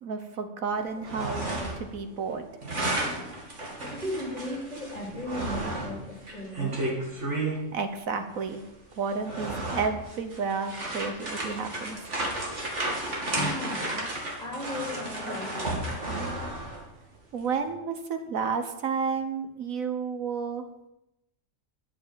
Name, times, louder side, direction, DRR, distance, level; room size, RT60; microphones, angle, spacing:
voice 1, 0.0-1.5 1.8-2.5 7.4-7.5 7.7-8.6 9.0-12.0 17.3-20.6, right 5 dB, 80° right, 7 dB, 1.6 m, -31 dB
sound 1, 0.9-2.0 2.2-7.6 8.5-8.6 9.1-16.9, right 2 dB, 60° right, 2.9 m, -33 dB
voice 2, 3.6-6.7 13.0-16.3, left 1 dB, 30° left, -1 dB, 3.5 m, -37 dB
11.5 x 8.4 x 7.6 m, 0.89 s
omnidirectional pair, 1.4 m